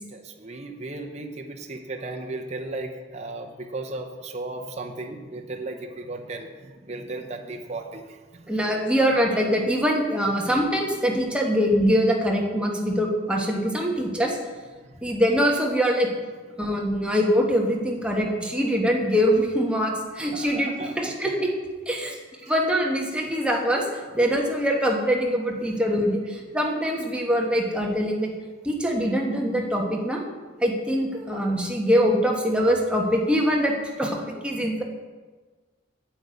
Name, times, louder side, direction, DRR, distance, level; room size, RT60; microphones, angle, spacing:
voice 1, 0.1-8.5 14.9-15.0 20.3-20.9 22.0-22.5, right 2 dB, 35° right, 2 dB, 0.7 m, -36 dB
voice 2, 8.5-14.4 15.0-16.1 16.6-21.5 21.9-22.2 22.5-28.3 28.6-30.2 30.6-34.8, equal, 5° right, -1 dB, 1.3 m, -23 dB
8.8 x 8.1 x 5.1 m, 1.4 s
head